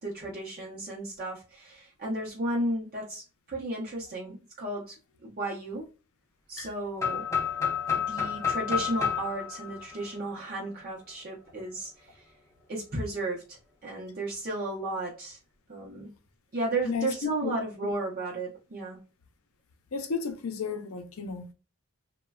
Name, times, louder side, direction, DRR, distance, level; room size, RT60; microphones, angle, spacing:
voice 1, 0.0-5.0 5.2-5.9 6.5-7.3 7.9-12.3 12.7-15.4 15.7-16.1 16.5-19.0, right 2 dB, 40° right, 0.6 m, -34 dB
sound 1, 7.0-10.8, left 7 dB, 15° left, 0.5 m, -30 dB
voice 2, 16.8-17.5 17.8-17.9 19.9-21.5, left 5 dB, 70° left, 0.5 m, -33 dB
3.1 x 2.1 x 2.2 m
head